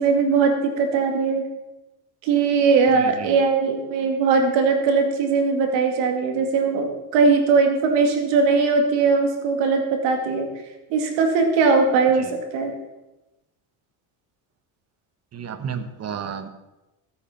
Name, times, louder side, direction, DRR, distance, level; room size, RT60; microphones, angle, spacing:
voice 1, 0.0-1.4 2.2-10.5 10.9-12.3 12.5-12.7, right 4 dB, 85° right, 4 dB, 2.3 m, -20 dB
voice 2, 3.0-3.3 12.2-12.3 15.3-16.5, right 7 dB, 35° right, 10 dB, 1.1 m, -32 dB
14.0 x 8.8 x 4.4 m, 1.0 s
cardioid pair, 120°, 44 cm